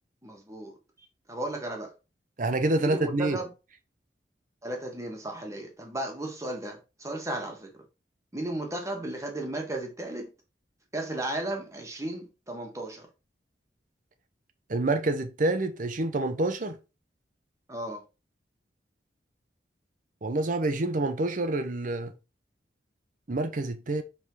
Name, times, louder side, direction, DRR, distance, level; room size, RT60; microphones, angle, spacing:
voice 1, 0.2-0.7 1.3-1.9 2.8-3.5 4.6-7.8 8.3-10.3 10.9-13.1 17.7-18.0, right 1 dB, 15° right, 1.5 m, -35 dB
voice 2, 2.4-3.4 14.7-16.8 20.2-22.1 23.3-24.0, right 2 dB, 45° right, 0.7 m, -27 dB
5.5 x 3.6 x 4.7 m
head